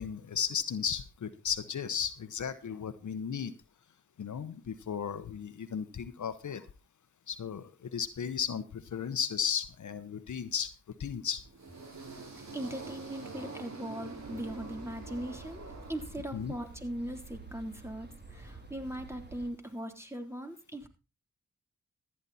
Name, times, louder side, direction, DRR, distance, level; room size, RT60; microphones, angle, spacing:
voice 1, 0.0-3.5 4.2-6.6 7.3-10.7 11.0-11.4 16.3-16.5, left 7 dB, 75° left, 12 dB, 1.1 m, -35 dB
sound 1, 11.4-16.6, right 3 dB, 65° right, 4.7 m, -45 dB
voice 2, 12.5-20.9, right 1 dB, 10° right, 5 dB, 3.5 m, -40 dB
sound 2, 14.1-19.5, right 3 dB, 35° right, 3.1 m, -49 dB
14.5 x 10.0 x 4.2 m, 0.31 s
cardioid pair, 40°, 30 cm